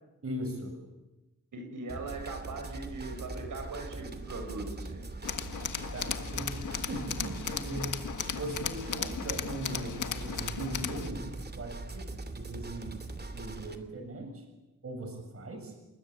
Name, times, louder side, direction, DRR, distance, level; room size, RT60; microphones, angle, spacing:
voice 1, 0.2-0.8 5.9-8.0 8.3-11.3 11.5-14.4 14.8-15.7, right 1 dB, 50° right, 4 dB, 6.8 m, -39 dB
voice 2, 1.5-5.0, right 3 dB, 90° right, 3 dB, 6.8 m, -40 dB
sound 1, 1.9-13.8, right 2 dB, 30° right, 2.6 m, -42 dB
Tools, 5.2-11.1, left 7 dB, 80° left, 1.7 m, -36 dB
29.0 x 20.0 x 8.6 m, 1.0 s
wide cardioid pair, 115°, 31 cm